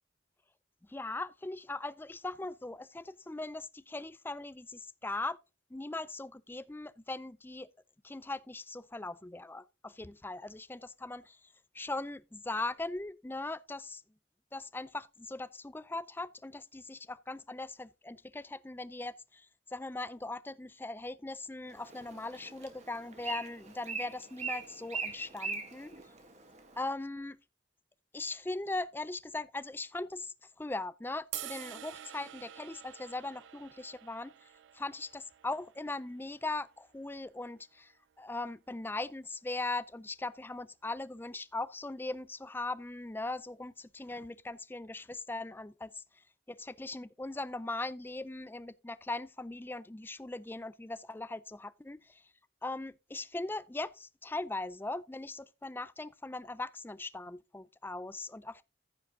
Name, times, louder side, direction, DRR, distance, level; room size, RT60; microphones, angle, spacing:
voice 1, 0.9-5.4 5.7-7.7 8.0-14.0 14.5-25.9 26.8-27.4 28.1-34.3 34.7-52.3 52.6-58.6, left 2 dB, 10° left, 0.4 m, -40 dB
Bird, 21.7-26.8, right 4 dB, 35° right, 1.7 m, -42 dB
sound 1, 31.3-37.6, right 13 dB, 75° right, 0.5 m, -48 dB
14.5 x 5.1 x 3.7 m
head